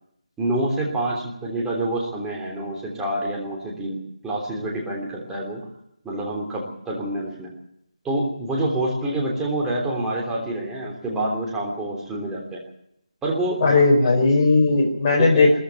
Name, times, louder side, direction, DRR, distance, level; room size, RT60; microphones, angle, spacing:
voice 1, 0.4-5.6 6.0-7.5 8.0-12.6 13.2-14.1 15.2-15.5, right 1 dB, 5° right, -3 dB, 3.3 m, -27 dB
voice 2, 13.6-15.6, left 3 dB, 25° left, -2 dB, 4.7 m, -17 dB
20.5 x 14.5 x 9.4 m, 0.78 s
figure-of-eight pair, 165°, 4 cm